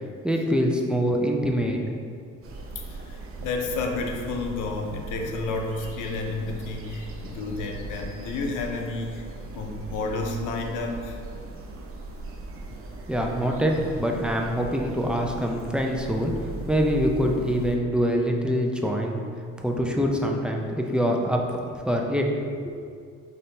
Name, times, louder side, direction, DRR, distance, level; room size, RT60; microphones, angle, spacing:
voice 1, 0.2-1.8 13.1-19.2 19.6-22.3 22.6-22.8, equal, 5° right, 0 dB, 0.5 m, -25 dB
sound 1, 2.4-17.8, right 3 dB, 45° right, 0.6 m, -39 dB
voice 2, 2.8-9.2 9.5-11.2, left 3 dB, 85° left, 2 dB, 0.6 m, -31 dB
5.4 x 2.8 x 3.3 m, 2.3 s
cardioid pair, 90°, 30 cm